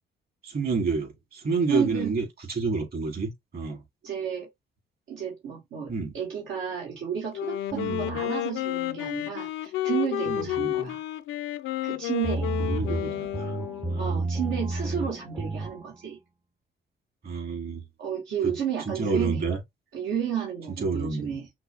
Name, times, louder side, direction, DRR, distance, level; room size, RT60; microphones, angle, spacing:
voice 1, 0.4-3.8 5.9-6.2 7.7-8.2 10.3-10.7 12.6-13.6 13.9-14.4 17.2-17.8 18.4-18.5 18.9-19.6 20.8-21.6, right 4 dB, 50° right, 3.0 m, -29 dB
voice 2, 1.7-2.1 4.0-4.5 5.1-11.0 11.8-12.5 14.0-16.2 18.0-19.4 19.9-21.5, right 8 dB, 75° right, 1.5 m, -32 dB
Wind instrument woodwind instrument, 7.3-14.1, left 14 dB, 85° left, 0.5 m, -31 dB
sound 1, 12.2-15.9, right 2 dB, 10° right, 0.5 m, -31 dB
5.9 x 2.1 x 3.4 m
cardioid pair, 90°, 20 cm